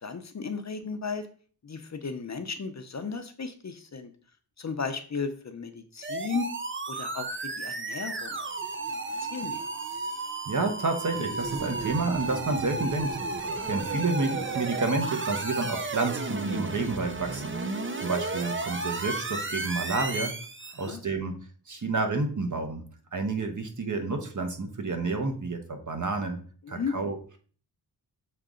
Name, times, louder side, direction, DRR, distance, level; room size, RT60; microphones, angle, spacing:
voice 1, 0.0-1.3 1.6-4.1 4.6-6.5 6.9-8.4 9.2-9.7 20.8-21.0 26.6-26.9, left 5 dB, 40° left, 8 dB, 0.7 m, -35 dB
sound 1, 6.0-20.9, right 3 dB, 30° right, 0.6 m, -33 dB
voice 2, 10.4-17.5 18.0-20.3 20.7-21.3 21.7-22.8 23.1-26.4 26.7-27.2, right 3 dB, 45° right, 5 dB, 1.1 m, -30 dB
6.8 x 4.0 x 3.8 m, 0.43 s
wide cardioid pair, 95°, 42 cm